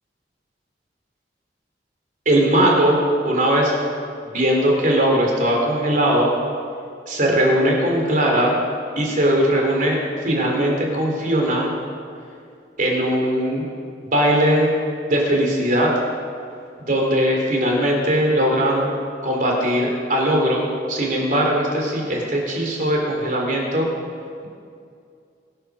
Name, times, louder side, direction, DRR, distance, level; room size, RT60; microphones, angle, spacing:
voice 1, 2.3-3.0 3.2-3.8 4.2-6.3 7.1-8.5 9.0-11.7 12.8-13.6 14.1-14.7 15.1-15.9 16.9-18.9 19.2-23.9, right 1 dB, 50° right, -1 dB, 3.9 m, -19 dB
22.5 x 9.0 x 6.7 m, 2.3 s
head